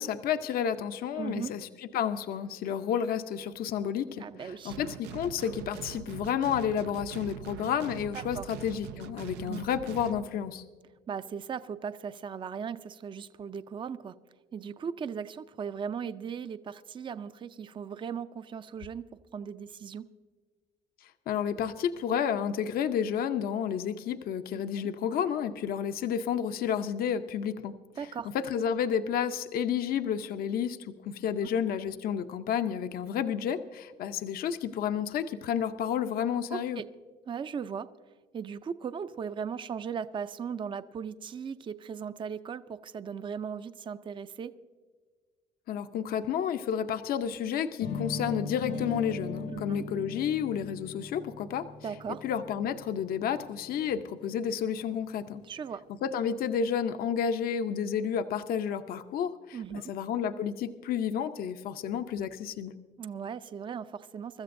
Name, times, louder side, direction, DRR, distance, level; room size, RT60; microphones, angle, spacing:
voice 1, 0.0-1.7 1.9-4.2 4.6-10.6 21.3-27.7 28.3-36.8 45.7-51.7 52.2-55.4 56.0-62.7, left 8 dB, 60° left, 9 dB, 0.7 m, -31 dB
voice 2, 1.2-1.5 4.2-4.8 8.1-8.5 9.5-9.6 11.1-14.2 14.5-19.0 19.3-20.1 28.0-28.3 36.5-36.8 37.3-37.9 38.3-44.5 49.5-49.8 51.8-52.2 55.4-55.8 59.5-59.9 63.0-64.4, right 7 dB, 30° right, 12 dB, 0.5 m, -37 dB
sound 1, 4.7-10.2, right 11 dB, 85° right, 0.5 m, -43 dB
sound 2, 47.8-53.7, left 4 dB, 80° left, 1.4 m, -39 dB
23.5 x 13.5 x 2.6 m, 1.5 s
cardioid pair, 110°, 17 cm